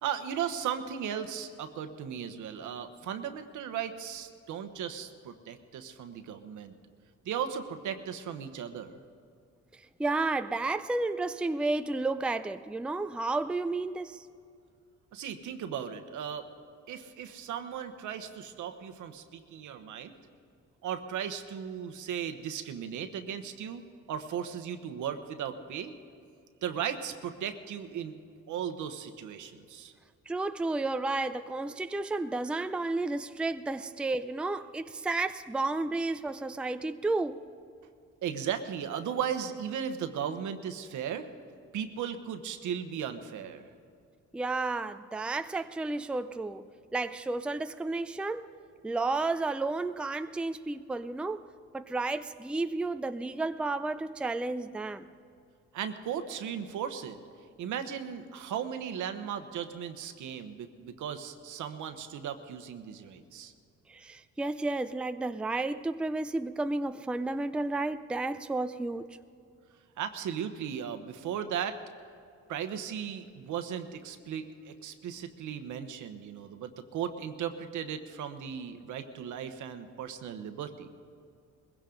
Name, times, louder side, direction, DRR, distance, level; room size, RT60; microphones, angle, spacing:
voice 1, 0.0-6.7 7.2-9.0 15.1-16.5 16.9-20.1 20.8-23.8 24.1-25.9 26.6-28.1 28.5-29.9 38.2-41.3 41.7-43.7 55.7-57.2 57.6-63.5 70.0-71.8 72.5-80.9, right 8 dB, 80° right, 1.1 m, -36 dB
voice 2, 10.0-14.3 30.3-37.4 44.3-46.6 46.9-48.5 48.8-51.4 51.7-55.1 63.9-69.1, right 2 dB, 5° right, 0.4 m, -32 dB
21.0 x 16.0 x 3.9 m
cardioid pair, 90°, 30 cm